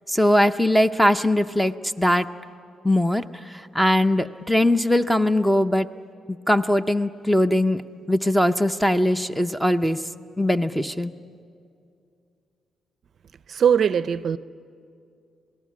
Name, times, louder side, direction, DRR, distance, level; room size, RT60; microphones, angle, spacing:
voice 1, 0.1-2.3 2.8-5.9 6.3-7.8 8.1-10.0 10.4-11.1, left 1 dB, 5° left, 0.6 m, -21 dB
voice 2, 13.5-14.4, right 8 dB, 50° right, 0.5 m, -20 dB
27.5 x 18.5 x 8.4 m
cardioid pair, 140°, 0 cm